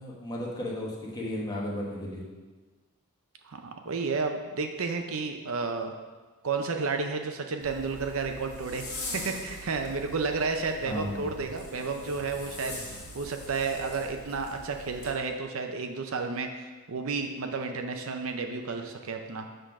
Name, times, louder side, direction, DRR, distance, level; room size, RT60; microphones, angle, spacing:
voice 1, 0.0-2.3 10.8-11.4, left 1 dB, 20° left, -4 dB, 1.3 m, -34 dB
voice 2, 3.4-5.9 6.4-8.8 9.1-19.5, right 4 dB, 65° right, 5 dB, 0.6 m, -32 dB
Zipper (clothing), 7.6-15.1, left 1 dB, 75° left, 2.2 m, -42 dB
6.6 x 3.8 x 6.0 m, 1.3 s
head